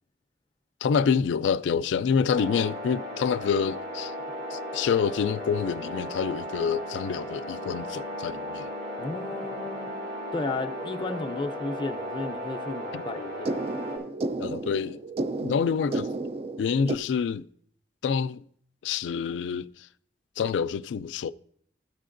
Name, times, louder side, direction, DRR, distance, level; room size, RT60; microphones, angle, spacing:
voice 1, 0.8-4.1 4.5-8.7 12.9-13.0 14.4-15.0 15.4-16.1 16.6-17.5 18.0-18.4 18.8-19.9 20.4-21.3, left 6 dB, 85° left, 0.3 m, -27 dB
sound 1, 2.3-14.0, left 1 dB, 85° right, 4.2 m, -36 dB
voice 2, 9.0-9.9 10.3-13.7, left 3 dB, 25° left, 0.5 m, -33 dB
sound 2, 10.5-17.0, right 2 dB, 35° right, 0.3 m, -34 dB
13.5 x 9.2 x 2.5 m
head